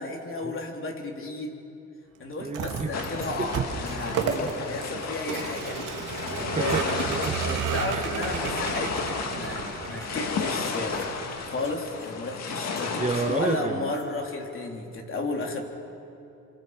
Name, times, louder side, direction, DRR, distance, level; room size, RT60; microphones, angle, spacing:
voice 1, 0.0-1.6 2.2-7.0 7.4-15.6, left 2 dB, 45° left, 1 dB, 3.6 m, -33 dB
voice 2, 2.4-2.9 3.4-3.6 4.3-4.5 6.4-7.4 7.9-8.0 13.0-13.8, right 3 dB, 25° right, 5 dB, 1.4 m, -30 dB
Vehicle, 2.4-11.8, right 7 dB, 85° right, 2.3 m, -33 dB
sound 1, 2.9-13.6, left 5 dB, 60° left, 2.3 m, -33 dB
sound 2, 3.2-3.5 3.9-4.9 5.3-6.2 6.7-7.0 7.2-7.9 8.3-8.7 9.4-9.6 10.0-10.4 10.7-11.1 11.6-12.2 12.8-14.1 14.4-14.5, equal, 10° left, 4.4 m, -51 dB
27.0 x 26.0 x 5.1 m, 2.8 s
cardioid pair, 90°, 30 cm